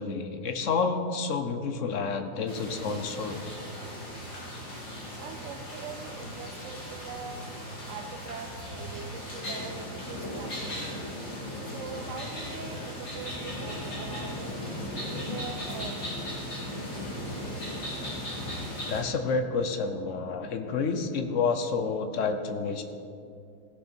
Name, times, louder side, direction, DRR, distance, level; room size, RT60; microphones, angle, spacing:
voice 1, 0.0-3.4 18.9-22.8, left 4 dB, 60° left, 7 dB, 0.9 m, -29 dB
sound 1, 2.5-19.0, left 1 dB, 80° left, 3.4 m, -37 dB
voice 2, 5.2-7.4 7.8-11.1 11.6-14.6 15.1-16.6, right 6 dB, 65° right, 6 dB, 0.8 m, -43 dB
16.5 x 6.7 x 4.4 m, 2.5 s
omnidirectional pair, 1.7 m